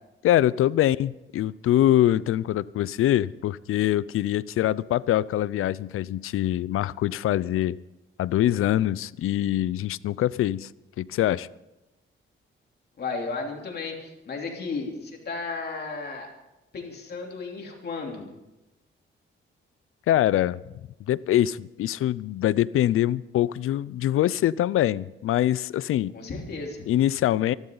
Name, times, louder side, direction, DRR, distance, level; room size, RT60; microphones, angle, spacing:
voice 1, 0.2-7.8 8.2-10.7 11.0-11.5 20.1-20.6 21.1-26.1 26.9-27.5, left 13 dB, 90° left, 20 dB, 0.5 m, -24 dB
voice 2, 13.0-16.3 16.7-18.3 26.1-26.8, left 4 dB, 50° left, 1 dB, 3.3 m, -34 dB
27.0 x 12.0 x 3.9 m, 0.98 s
wide cardioid pair, 160°, 21 cm